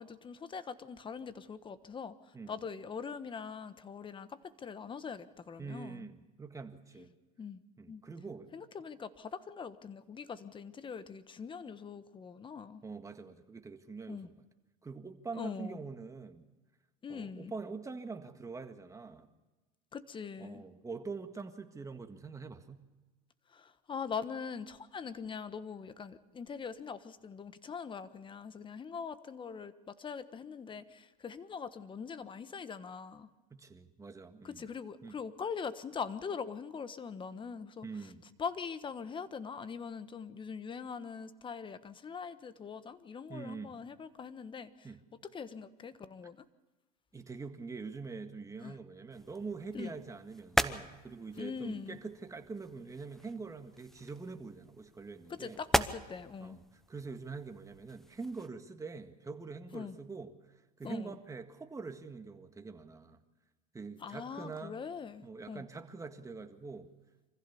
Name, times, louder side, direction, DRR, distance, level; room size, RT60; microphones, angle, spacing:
voice 1, 0.0-6.1 7.4-7.6 7.9-8.0 8.5-12.8 14.1-14.3 15.4-15.8 17.0-17.5 19.9-20.6 23.5-33.3 34.4-37.9 38.4-44.9 45.3-46.4 48.6-48.7 49.7-49.9 51.4-52.0 55.3-56.6 59.7-59.9 60.8-61.2 64.0-65.6, left 6 dB, 25° left, 13 dB, 1.3 m, -42 dB
voice 2, 5.6-7.2 7.8-8.5 12.8-14.4 14.8-16.4 17.1-19.3 20.4-22.8 33.5-34.7 35.0-35.2 37.8-38.2 43.3-43.8 44.8-45.0 47.1-55.6 56.4-60.3 60.8-63.2 63.7-64.8 65.2-66.9, right 4 dB, 15° right, 7 dB, 1.8 m, -44 dB
sound 1, 49.1-58.5, equal, ahead, 0.9 m, -39 dB
25.0 x 15.5 x 7.0 m, 1.2 s
supercardioid pair, 105°, 20 cm